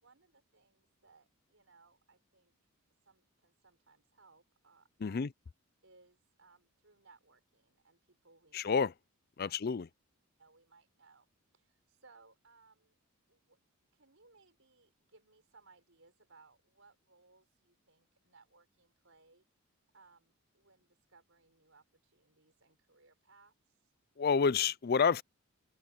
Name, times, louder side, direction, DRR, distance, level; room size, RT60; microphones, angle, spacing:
voice 1, 0.0-2.5 3.0-5.3 5.8-8.6 9.4-9.5 10.4-11.3 11.5-13.0 13.3-13.6 13.9-19.5 19.9-23.5, right 4 dB, 60° right, 6.3 m, -65 dB
voice 2, 8.5-8.9 9.4-9.9 24.2-25.2, left 5 dB, 45° left, 0.4 m, -29 dB
head